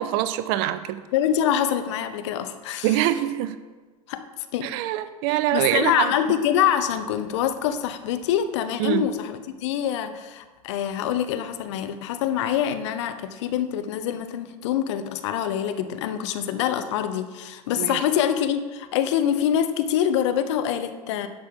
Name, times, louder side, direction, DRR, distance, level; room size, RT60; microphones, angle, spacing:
voice 1, 0.0-1.0 2.8-3.5 4.6-6.1 8.8-9.1 17.8-18.0, right 13 dB, 40° right, 12 dB, 0.5 m, -24 dB
voice 2, 1.1-3.0 4.1-4.2 4.5-4.7 5.3-21.3, left 9 dB, 50° left, 10 dB, 0.8 m, -25 dB
10.5 x 7.5 x 3.7 m, 1.3 s
figure-of-eight pair, 90°, 19 cm